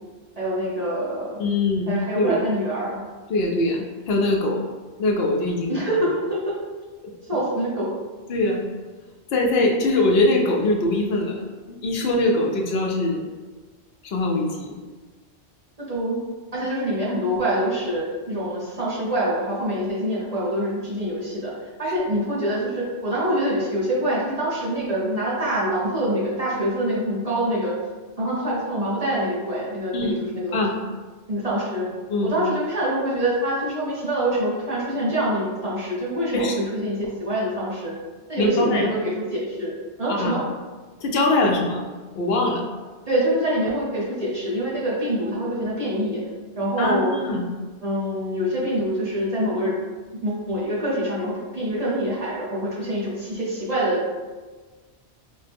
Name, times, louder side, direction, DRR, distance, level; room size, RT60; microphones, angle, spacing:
voice 1, 0.4-1.4 1.9-3.0 5.7-6.5 7.3-7.9 15.8-16.2 16.5-21.5 21.8-27.7 28.2-30.7 31.3-31.8 32.2-37.9 38.3-40.4 43.1-46.2 46.6-47.1 47.8-49.8 50.2-54.0, right 1 dB, 35° right, -7 dB, 0.9 m, -25 dB
voice 2, 1.4-2.4 3.3-4.6 5.0-5.7 8.3-8.6 9.3-13.2 14.0-14.7 29.9-30.2 30.5-30.7 32.1-32.3 36.3-36.6 38.4-38.9 40.1-40.3 41.0-41.9 42.2-42.6 46.8-47.4, left 2 dB, 65° left, 1 dB, 0.8 m, -22 dB
4.2 x 2.1 x 3.3 m, 1.4 s
omnidirectional pair, 1.2 m